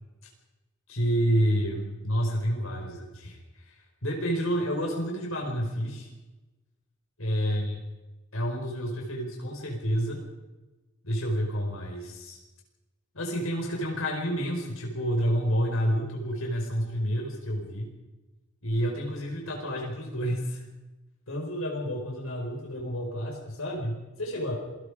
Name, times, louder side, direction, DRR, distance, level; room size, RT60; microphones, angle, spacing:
voice 1, 0.9-6.1 7.2-7.8 8.3-10.2 11.0-12.4 13.1-17.9 18.6-20.6 21.3-24.6, equal, 85° left, 0 dB, 5.2 m, -29 dB
27.5 x 19.0 x 5.1 m, 1.1 s
head